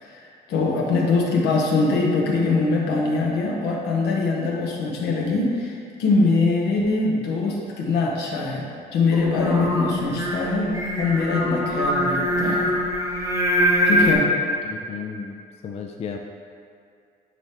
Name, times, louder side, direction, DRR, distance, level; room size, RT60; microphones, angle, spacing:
voice 1, 0.0-8.6 8.9-12.7 13.9-14.3, left 3 dB, 80° left, -1 dB, 1.0 m, -23 dB
Singing, 9.1-14.1, equal, 15° right, 1.1 m, -23 dB
voice 2, 14.6-16.2, left 6 dB, 35° left, 2 dB, 0.4 m, -34 dB
9.4 x 3.4 x 2.9 m, 2.3 s
cardioid pair, 110°, 17 cm